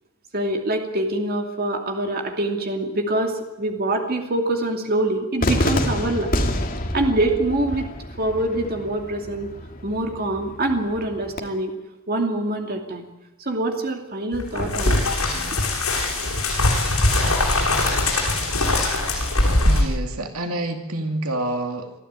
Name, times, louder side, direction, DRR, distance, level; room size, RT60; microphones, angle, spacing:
voice 1, 0.3-6.4 6.9-7.9 8.2-9.5 9.8-11.7 12.1-13.1 13.5-15.1, right 1 dB, 45° right, 3 dB, 2.7 m, -24 dB
Cheering / Fireworks, 5.4-11.4, left 1 dB, 40° left, 2.5 m, -28 dB
Huge Cinematic Explosion, 14.3-19.8, left 2 dB, 80° left, 7.8 m, -21 dB
voice 2, 19.6-21.9, right 1 dB, 80° right, 5 dB, 2.5 m, -27 dB
24.5 x 14.0 x 9.0 m, 1.0 s
head